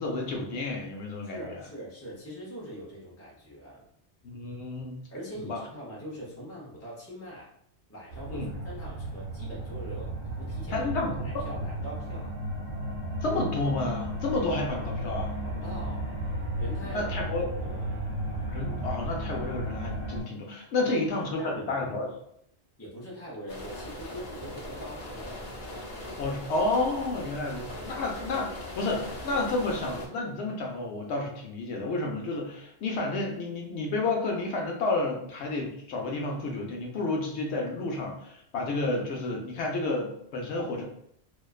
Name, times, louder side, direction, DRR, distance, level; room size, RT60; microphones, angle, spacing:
voice 1, 0.0-1.6 4.2-5.0 5.4-5.6 8.3-8.5 10.7-11.1 13.2-15.3 16.8-17.5 18.5-22.1 26.2-40.8, left 2 dB, 80° left, 0 dB, 0.9 m, -31 dB
voice 2, 1.2-3.8 5.1-7.5 7.9-10.9 11.2-12.3 15.4-16.1 16.6-18.0 20.8-20.9 21.4-22.2 22.8-25.4 40.7-40.8, equal, 20° left, -6 dB, 0.4 m, -42 dB
sound 1, 8.1-20.2, right 1 dB, 55° right, 0.9 m, -34 dB
sound 2, 23.5-30.1, left 1 dB, 55° left, 0.7 m, -40 dB
2.4 x 2.2 x 2.3 m, 0.71 s
omnidirectional pair, 1.1 m